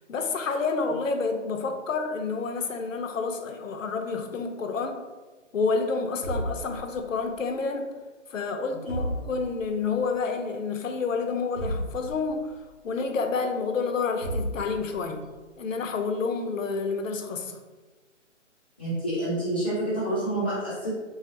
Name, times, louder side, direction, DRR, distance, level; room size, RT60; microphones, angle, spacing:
voice 1, 0.1-5.0 5.5-7.9 8.3-12.6 12.8-15.3 15.6-17.6, left 4 dB, 85° left, 5 dB, 0.6 m, -29 dB
sound 1, 6.2-7.4 8.9-9.8 11.6-12.6 14.2-15.2, right 1 dB, 40° right, 0.7 m, -33 dB
voice 2, 18.8-20.9, right 1 dB, 10° left, -13 dB, 0.4 m, -28 dB
3.2 x 2.4 x 2.7 m, 1.3 s
hypercardioid pair, 150°, 38 cm